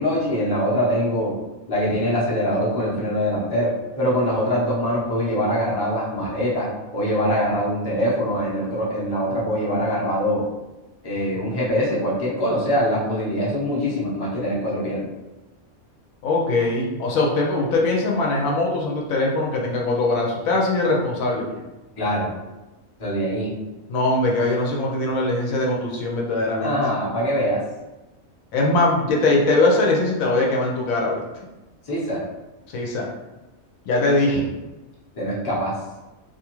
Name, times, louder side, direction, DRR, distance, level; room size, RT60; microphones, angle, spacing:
voice 1, 0.0-1.3 1.7-10.5 11.0-15.1 21.9-22.3 23.0-23.5 26.6-27.6 31.8-32.2 35.1-35.7, equal, 25° left, -7 dB, 0.6 m, -23 dB
voice 2, 16.2-21.5 23.9-26.8 28.5-31.2 32.7-33.1 33.9-34.5, left 2 dB, 80° left, -2 dB, 1.0 m, -21 dB
2.5 x 2.4 x 2.9 m, 1.1 s
omnidirectional pair, 1.4 m